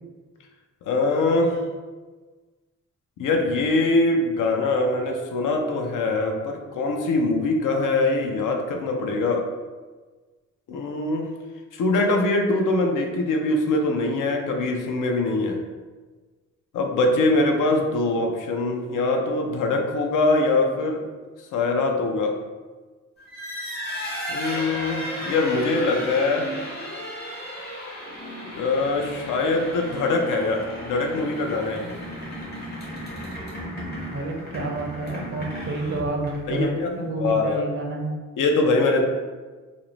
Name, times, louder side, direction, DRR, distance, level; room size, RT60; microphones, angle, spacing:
voice 1, 0.8-1.6 3.2-9.4 10.7-11.3 11.7-15.6 16.7-21.0 21.5-22.4 24.3-26.5 28.5-31.9 36.5-36.9 37.2-37.6 38.4-39.0, left 2 dB, 80° left, 2 dB, 0.5 m, -23 dB
sound 1, 23.2-36.6, equal, 35° left, 0.6 m, -35 dB
voice 2, 34.0-38.1, right 2 dB, 45° right, 1 dB, 0.4 m, -29 dB
2.5 x 2.0 x 2.9 m, 1.3 s
wide cardioid pair, 150°, 31 cm